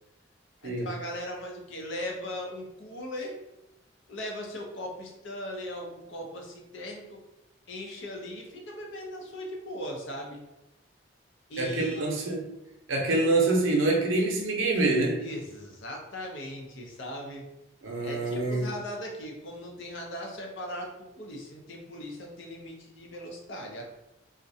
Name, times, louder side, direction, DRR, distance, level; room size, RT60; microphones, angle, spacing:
voice 1, 0.6-3.4 4.1-7.2 7.7-10.4 11.5-12.2 15.2-17.5 18.0-23.8, left 1 dB, 70° left, 1 dB, 0.5 m, -39 dB
voice 2, 11.6-12.5 12.9-15.2 17.8-18.6, right 2 dB, 85° right, 0 dB, 0.6 m, -26 dB
2.4 x 2.1 x 2.6 m, 0.91 s
head